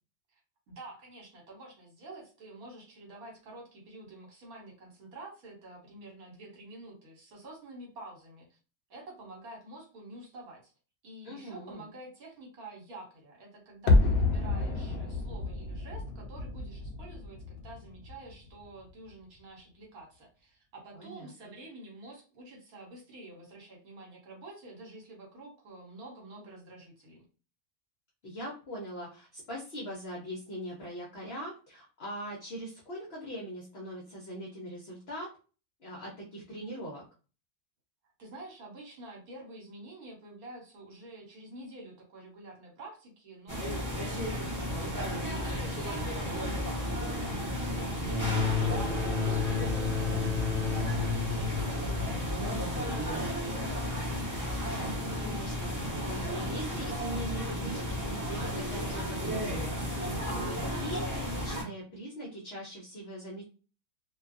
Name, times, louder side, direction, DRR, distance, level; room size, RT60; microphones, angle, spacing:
voice 1, 0.7-8.6 8.9-10.7 11.0-27.2 38.2-53.9, right 2 dB, 70° right, -1 dB, 1.4 m, -48 dB
voice 2, 11.2-11.8 20.9-21.5 28.2-35.3 35.8-37.0 49.9-50.3 55.2-63.4, right 1 dB, 55° left, -3 dB, 0.7 m, -41 dB
sound 1, 13.9-18.8 19.1-19.2, left 3 dB, 90° left, 0.5 m, -29 dB
sound 2, 43.5-61.6, equal, 20° right, 0.6 m, -33 dB
sound 3, 48.0-53.5, left 5 dB, 45° right, 0.8 m, -32 dB
2.5 x 2.2 x 2.4 m, 0.36 s
omnidirectional pair, 1.7 m